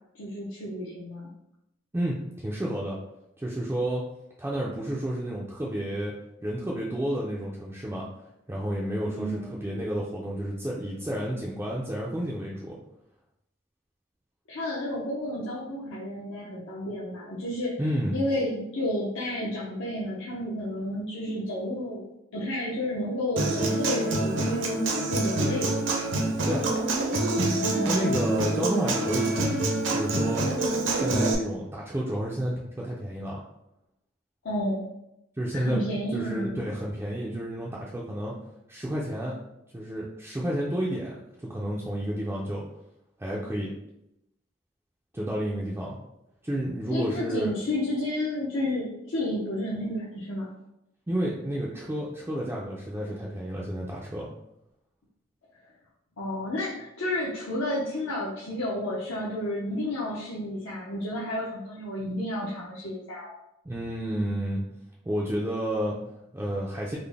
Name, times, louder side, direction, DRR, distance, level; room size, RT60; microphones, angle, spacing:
voice 1, 0.1-1.3 9.1-9.6 14.5-17.8 18.1-22.0 22.3-24.8 25.1-25.7 27.6-28.1 34.4-34.9 35.5-36.7 46.9-50.5 56.2-63.4, left 1 dB, 70° left, -6 dB, 0.6 m, -31 dB
voice 2, 1.9-3.0 3.4-4.0 4.4-6.1 6.4-8.1 8.5-12.8 17.8-18.2 26.4-26.7 27.8-29.5 29.9-30.5 30.9-33.4 35.4-35.8 36.1-38.4 38.7-39.4 39.7-42.6 43.2-43.7 45.1-46.0 46.4-47.5 51.1-54.3 63.6-64.7 65.0-67.0, right 1 dB, 10° right, -5 dB, 0.3 m, -31 dB
Human voice / Acoustic guitar, 23.4-31.3, right 2 dB, 60° right, 0.6 m, -26 dB
3.8 x 2.0 x 3.4 m, 0.83 s
head